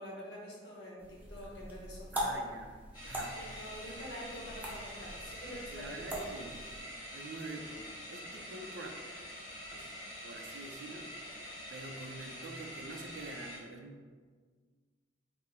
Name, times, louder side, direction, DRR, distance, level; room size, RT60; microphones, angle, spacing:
voice 1, 0.0-2.4 3.4-6.0, equal, 75° left, -4 dB, 1.0 m, -46 dB
sound 1, 1.0-6.8, right 1 dB, 10° right, 0.6 m, -42 dB
voice 2, 2.1-2.7 3.0-3.4 3.9-4.0 5.7-6.7 7.1-8.9 9.7-9.9 10.2-11.1 11.7-14.1, right 2 dB, 80° right, 3 dB, 0.5 m, -46 dB
sound 2, 2.9-13.6, equal, 25° left, 1.3 m, -46 dB
3.6 x 2.0 x 4.1 m, 1.5 s
head